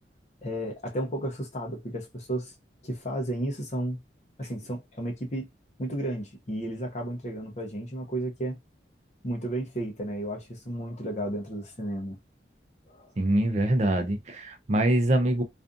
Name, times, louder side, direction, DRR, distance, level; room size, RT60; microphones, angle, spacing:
voice 1, 0.4-2.5 2.8-4.0 4.4-5.5 5.8-8.6 9.2-12.2 12.9-13.1, right 1 dB, 40° left, 0.7 m, -33 dB
voice 2, 13.2-15.4, right 1 dB, 40° right, 0.4 m, -24 dB
2.5 x 2.4 x 2.5 m
head